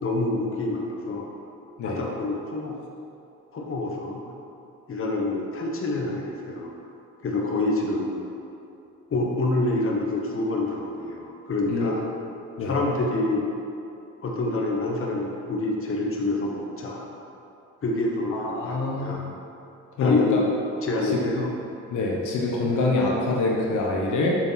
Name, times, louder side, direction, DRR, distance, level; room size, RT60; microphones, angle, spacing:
voice 1, 0.0-1.3 1.8-2.7 3.5-4.2 4.9-6.7 7.2-8.1 9.1-12.0 12.6-13.5 14.2-17.1 17.8-19.3 20.0-20.5 20.8-21.5, left 2 dB, 45° left, -1 dB, 1.3 m, -27 dB
voice 2, 18.3-19.2 20.0-20.4 21.1-21.5 21.9-24.4, left 2 dB, 75° left, -2 dB, 1.2 m, -25 dB
7.0 x 6.5 x 4.2 m, 2.7 s
cardioid pair, 90°, 30 cm